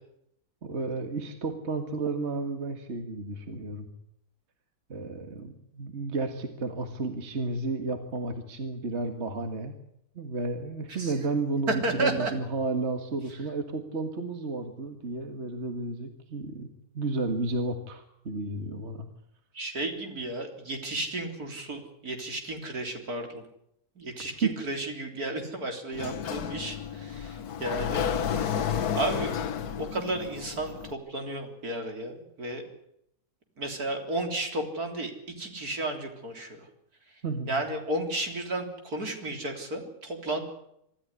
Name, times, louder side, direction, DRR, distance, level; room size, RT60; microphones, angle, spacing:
voice 1, 0.6-3.9 4.9-9.7 10.1-16.7 16.9-19.1 24.4-24.5 37.2-37.6, right 3 dB, 45° right, 6 dB, 2.1 m, -32 dB
voice 2, 11.7-12.3 19.5-23.4 24.0-29.4 29.8-32.6 33.6-35.1 35.4-36.7 37.5-40.4, right 2 dB, 75° right, 4 dB, 4.2 m, -33 dB
Sliding door, 25.9-30.9, left 8 dB, 80° left, 1.6 m, -31 dB
25.5 x 13.5 x 9.8 m, 0.76 s
omnidirectional pair, 1.6 m